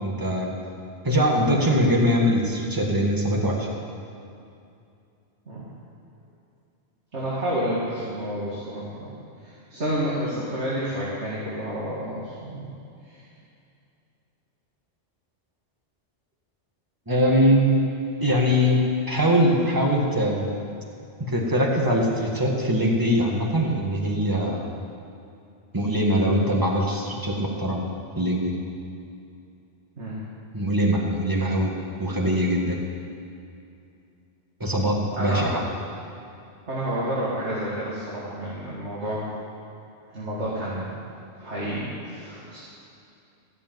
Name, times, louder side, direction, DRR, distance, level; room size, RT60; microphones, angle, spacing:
voice 1, 0.0-0.5 1.0-3.7 17.1-17.8 18.2-18.8 19.1-20.5 21.3-24.7 25.7-27.8 28.2-28.6 30.5-31.7 32.0-32.8 34.6-35.6, equal, 15° right, -1 dB, 1.7 m, -22 dB
voice 2, 7.1-9.1 9.4-12.7 13.1-13.2 30.0-30.2 35.2-35.5 36.7-39.2 40.1-40.9 41.4-42.6, equal, 70° right, -8 dB, 2.7 m, -30 dB
15.5 x 7.0 x 9.2 m, 2.6 s
omnidirectional pair, 1.2 m